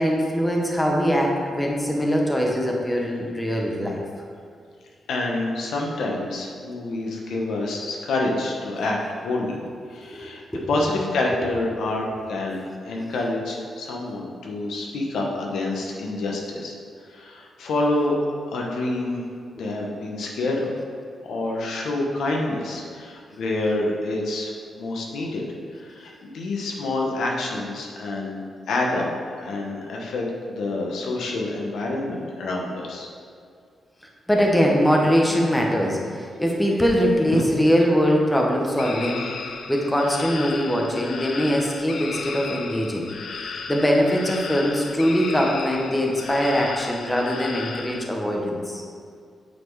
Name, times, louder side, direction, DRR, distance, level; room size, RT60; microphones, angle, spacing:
voice 1, 0.0-4.0 10.1-10.2 10.5-10.7 34.3-39.4 39.7-48.8, equal, 5° left, -1 dB, 1.0 m, -22 dB
voice 2, 5.1-9.6 9.9-10.4 10.7-16.7 17.1-18.2 18.5-19.2 19.5-20.7 21.2-25.5 25.7-29.1 29.4-33.1, left 2 dB, 85° left, -1 dB, 1.1 m, -27 dB
sound 1, 38.8-48.0, left 4 dB, 60° left, 0.5 m, -35 dB
8.4 x 4.3 x 4.7 m, 2.3 s
cardioid pair, 120°, 0 cm